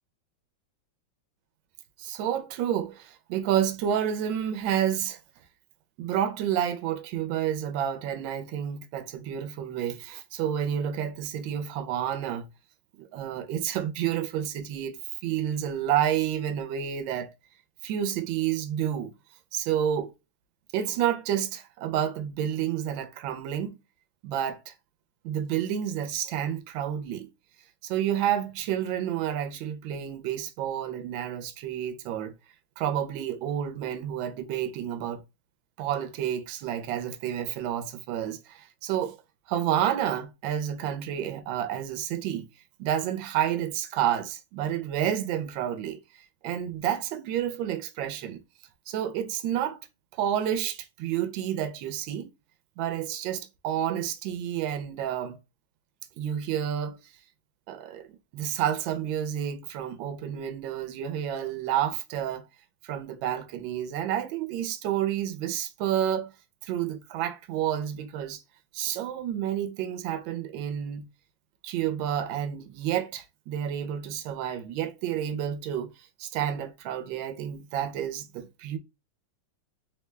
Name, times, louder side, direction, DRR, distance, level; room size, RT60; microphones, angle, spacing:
voice 1, 2.0-5.2 6.0-12.5 13.0-15.0 15.2-17.3 17.8-19.1 19.5-20.1 20.7-23.8 24.2-24.7 25.2-27.3 27.8-32.3 32.8-35.2 35.8-39.2 39.5-42.4 42.8-46.0 46.4-48.4 48.9-49.8 50.1-52.3 52.8-55.4 56.2-57.0 57.7-58.1 58.3-62.5 62.8-66.3 66.6-68.4 68.7-71.1 71.6-78.8, right 10 dB, 75° right, 1.2 m, -30 dB
3.6 x 2.1 x 3.2 m
omnidirectional pair, 2.3 m